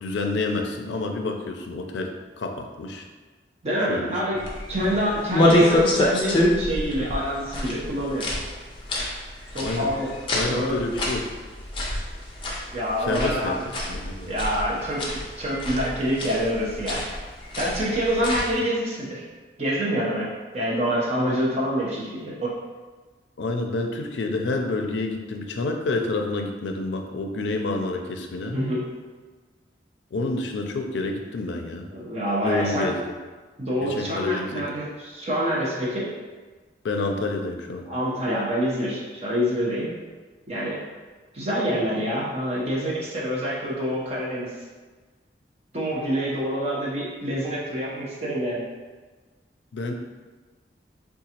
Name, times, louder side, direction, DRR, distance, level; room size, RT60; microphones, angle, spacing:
voice 1, 0.0-3.0 3.9-4.4 9.6-9.9 10.3-11.3 13.1-13.5 13.9-14.3 23.4-28.6 30.1-31.9 32.4-33.0 34.0-34.6 36.8-37.8 49.7-49.9, left 2 dB, 90° left, 4 dB, 0.4 m, -28 dB
voice 2, 3.6-8.3 9.5-10.9 12.7-13.6 14.2-17.0 17.5-19.2 19.6-22.4 28.5-28.9 31.9-32.9 33.6-36.1 37.9-39.9 40.5-40.8 41.3-44.6 45.7-48.7, equal, 40° right, -5 dB, 0.8 m, -26 dB
sound 1, 4.4-18.6, left 1 dB, 30° left, 0.5 m, -27 dB
3.8 x 2.3 x 2.8 m, 1.3 s
head